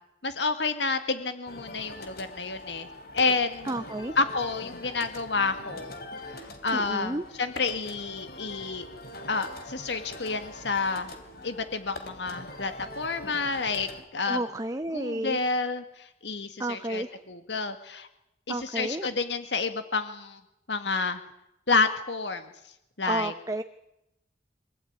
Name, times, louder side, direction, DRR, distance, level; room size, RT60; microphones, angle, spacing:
voice 1, 0.2-2.9 3.1-3.7 4.2-5.9 6.3-8.9 9.3-11.1 11.4-14.4 14.9-18.1 18.5-20.4 20.7-21.2 21.7-22.4 23.0-23.3, left 4 dB, 80° left, 9 dB, 1.9 m, -29 dB
sound 1, 1.5-14.0, left 1 dB, 60° left, 3.3 m, -43 dB
voice 2, 3.6-4.1 6.7-7.2 14.3-15.4 16.6-17.2 18.5-19.1 23.1-23.6, right 1 dB, 20° right, 9 dB, 0.8 m, -31 dB
24.5 x 16.5 x 9.5 m, 0.86 s
head